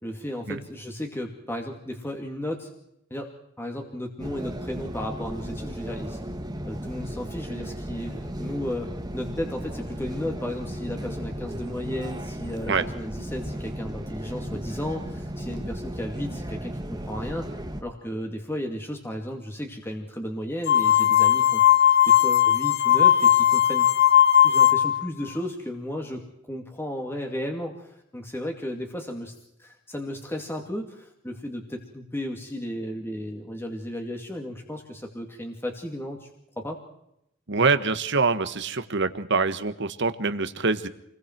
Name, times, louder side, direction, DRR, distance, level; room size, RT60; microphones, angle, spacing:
voice 1, 0.0-2.7 3.1-3.3 3.6-6.2 6.7-17.5 17.8-21.6 22.1-23.9 24.4-26.2 26.5-29.3 29.6-36.3 36.6-36.8, left 1 dB, 10° left, 2 dB, 2.4 m, -34 dB
sound 1, 4.2-17.8, equal, 20° right, 1.8 m, -35 dB
sound 2, 20.7-25.1, left 10 dB, 55° left, 1.3 m, -18 dB
voice 2, 37.5-40.9, right 4 dB, 65° right, 11 dB, 1.6 m, -25 dB
28.5 x 21.5 x 4.6 m, 0.78 s
head